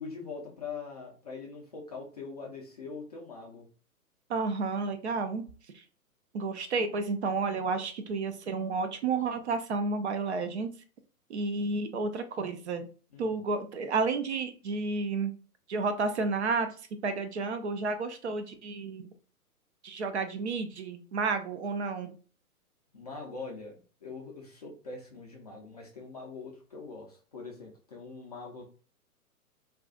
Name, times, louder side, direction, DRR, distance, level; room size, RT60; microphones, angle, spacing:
voice 1, 0.0-3.7 13.1-13.4 22.9-28.6, left 4 dB, 30° left, 0 dB, 0.4 m, -43 dB
voice 2, 4.3-5.4 6.3-10.7 11.3-12.9 13.2-15.3 15.7-16.7 17.0-19.1 19.8-22.1, right 4 dB, 50° right, 9 dB, 0.5 m, -31 dB
2.4 x 2.3 x 3.6 m, 0.38 s
figure-of-eight pair, 125°, 45 cm